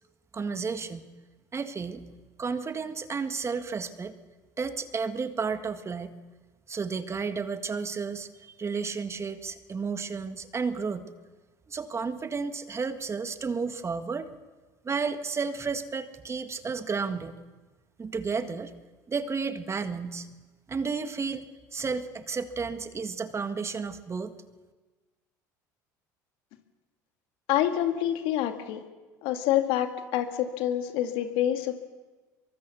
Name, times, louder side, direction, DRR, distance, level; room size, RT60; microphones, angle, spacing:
voice 1, 0.3-1.1 1.5-2.0 2.4-4.1 4.6-6.1 6.7-11.1 11.7-14.3 14.8-17.4 18.0-18.7 19.1-20.3 20.7-24.3, right 5 dB, 30° right, 9 dB, 1.8 m, -32 dB
voice 2, 27.5-28.8 29.2-31.7, left 11 dB, 65° left, 7 dB, 2.1 m, -27 dB
23.5 x 23.0 x 7.0 m, 1.3 s
hypercardioid pair, 70°, 10 cm